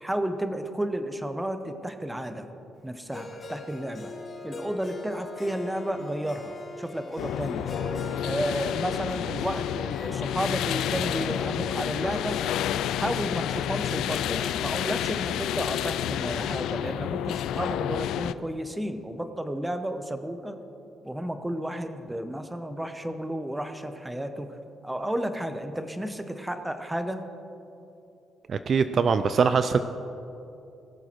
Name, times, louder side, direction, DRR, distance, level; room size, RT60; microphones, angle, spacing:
voice 1, 0.0-2.5 2.8-4.1 4.4-7.7 8.2-12.4 13.0-20.6 21.0-24.6 24.8-27.2, right 1 dB, 10° right, 8 dB, 0.9 m, -32 dB
Harp, 3.1-15.3, left 2 dB, 35° left, 2.0 m, -42 dB
sound 1, 7.2-18.3, left 11 dB, 85° left, 0.3 m, -30 dB
voice 2, 28.5-29.8, right 5 dB, 50° right, 11 dB, 0.4 m, -22 dB
20.5 x 6.9 x 4.5 m, 2.8 s
cardioid pair, 90°, 0 cm